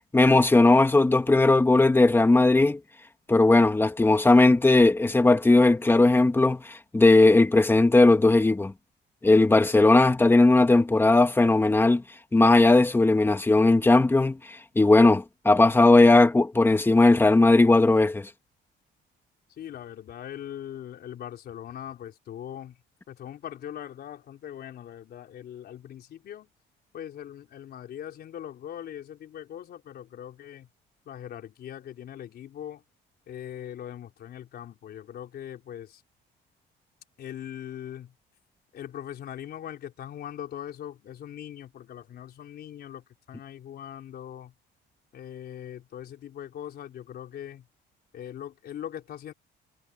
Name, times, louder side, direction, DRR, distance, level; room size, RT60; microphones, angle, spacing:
voice 1, 0.1-2.8 3.3-6.6 6.9-8.7 9.2-12.0 12.3-14.4 14.7-18.3, left 2 dB, 10° left, 1.6 m, -18 dB
voice 2, 19.6-22.8 23.1-26.5 26.9-30.7 31.1-32.8 33.3-36.0 37.2-38.1 38.7-44.5 45.1-47.7 48.1-49.3, left 10 dB, 55° left, 4.2 m, -40 dB
cardioid pair, 135°, 19 cm